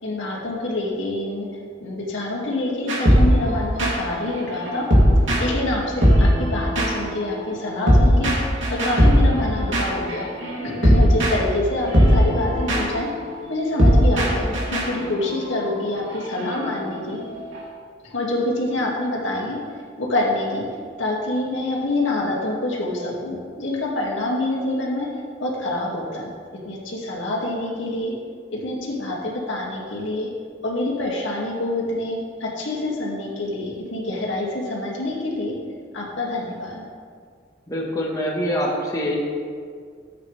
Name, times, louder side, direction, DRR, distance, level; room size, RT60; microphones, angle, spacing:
voice 1, 0.0-1.5 1.8-4.9 5.4-8.3 8.7-10.3 10.6-13.1 13.5-17.2 18.0-19.6 20.0-20.6 21.0-25.1 25.4-26.3 26.6-28.1 28.5-30.3 30.6-35.5 35.9-36.8, left 2 dB, 80° left, -3 dB, 2.1 m, -26 dB
sound 1, 2.9-5.7 6.0-17.6, equal, 90° right, 2.8 m, -19 dB
voice 2, 37.7-39.2, equal, 20° left, -3 dB, 1.3 m, -24 dB
13.5 x 8.3 x 3.3 m, 2.1 s
head